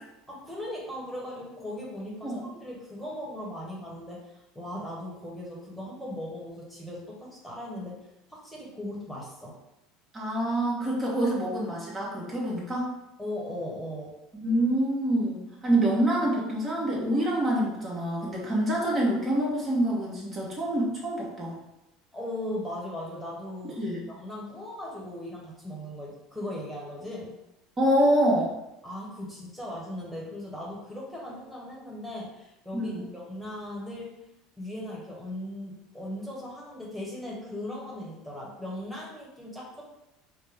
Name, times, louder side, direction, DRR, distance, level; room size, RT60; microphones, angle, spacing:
voice 1, 0.3-9.5 13.2-14.1 22.1-23.8 24.1-27.3 28.8-34.1 34.6-39.8, left 1 dB, ahead, -5 dB, 1.4 m, -38 dB
voice 2, 10.1-12.9 14.3-21.6 23.6-24.0 27.8-28.5 32.7-33.1, right 1 dB, 35° right, -4 dB, 1.4 m, -26 dB
4.8 x 2.2 x 3.5 m, 0.91 s
hypercardioid pair, 75°, 0 cm